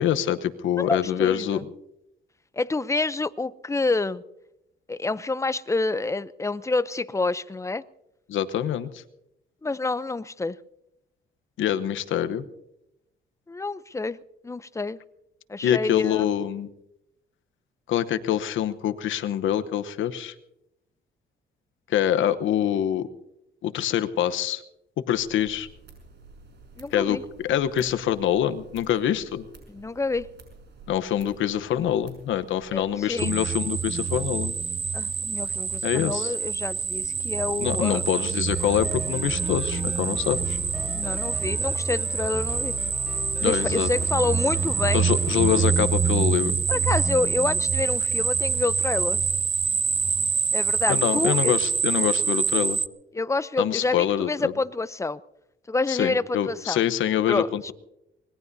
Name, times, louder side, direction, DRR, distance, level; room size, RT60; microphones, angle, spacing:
voice 1, 0.0-1.6 8.3-9.0 11.6-12.5 15.6-16.7 17.9-20.3 21.9-23.1 23.6-24.6 25.1-25.7 26.9-29.4 30.9-34.5 35.8-36.3 37.6-40.6 43.4-43.9 44.9-46.5 50.9-52.8 53.6-54.5 55.9-57.7, left 10 dB, 75° left, 1.0 m, -25 dB
voice 2, 0.8-1.7 2.5-4.2 4.9-7.8 9.6-10.6 13.5-14.2 14.4-15.0 15.5-16.3 26.8-27.2 29.7-30.3 32.7-33.3 34.9-38.0 40.9-42.8 43.4-45.1 46.7-49.2 50.5-51.5 53.1-55.2 55.7-56.8 57.3-57.7, left 3 dB, 15° left, 0.6 m, -28 dB
sound 1, 25.1-33.0, right 3 dB, 60° right, 5.9 m, -50 dB
sound 2, 33.2-52.9, right 6 dB, 25° right, 0.5 m, -26 dB
sound 3, 38.5-45.7, left 1 dB, 5° right, 3.9 m, -35 dB
24.5 x 20.0 x 2.7 m
cardioid pair, 90°, 20 cm